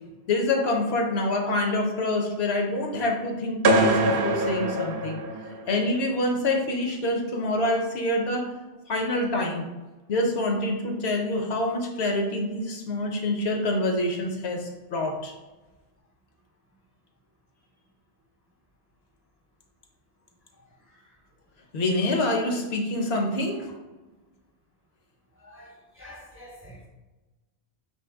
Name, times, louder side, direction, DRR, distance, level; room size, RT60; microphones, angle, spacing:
voice 1, 0.3-5.2 5.7-8.5 8.9-9.7 10.1-15.3 21.7-23.7, left 1 dB, 70° left, 2 dB, 1.0 m, -26 dB
sound 1, 3.6-5.8, right 1 dB, 65° right, 0.8 m, -23 dB
voice 2, 25.4-26.9, left 1 dB, 15° right, -2 dB, 0.6 m, -47 dB
4.5 x 2.7 x 3.5 m, 1.1 s
omnidirectional pair, 1.1 m